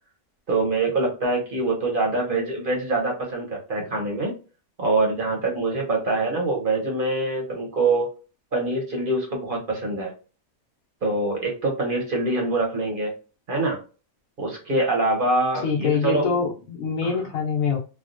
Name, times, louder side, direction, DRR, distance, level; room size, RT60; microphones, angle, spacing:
voice 1, 0.5-4.3 4.8-8.1 8.5-10.1 11.0-13.1 13.5-13.8 14.4-16.3 17.0-17.1, right 2 dB, 45° right, 0 dB, 0.9 m, -24 dB
voice 2, 15.6-17.8, left 6 dB, 80° left, -1 dB, 1.2 m, -24 dB
3.4 x 2.1 x 2.5 m, 0.34 s
omnidirectional pair, 1.4 m